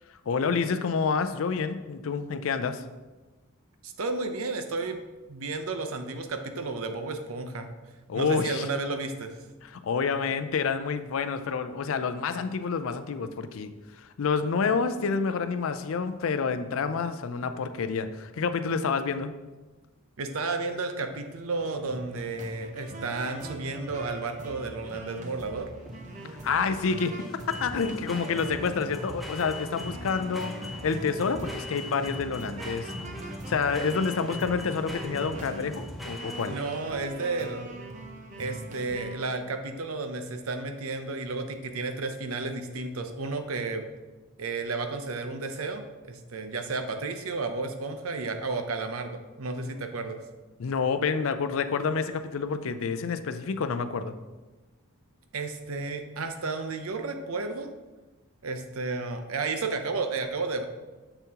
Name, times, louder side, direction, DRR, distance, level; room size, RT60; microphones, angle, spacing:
voice 1, 0.3-2.8 8.1-8.7 9.6-19.3 26.4-30.5 30.8-32.9 33.5-36.6 50.6-54.1, left 5 dB, 65° left, 10 dB, 0.4 m, -28 dB
voice 2, 3.8-5.0 5.3-7.7 8.1-9.4 20.2-25.7 36.5-37.7 38.4-43.8 44.4-50.2 55.3-57.7 58.4-60.6, right 3 dB, 75° right, 7 dB, 0.7 m, -32 dB
sound 1, 21.6-39.3, right 2 dB, 35° right, 0.7 m, -43 dB
sound 2, 25.3-36.9, left 1 dB, ahead, 0.7 m, -40 dB
7.1 x 6.9 x 2.9 m, 1.2 s
head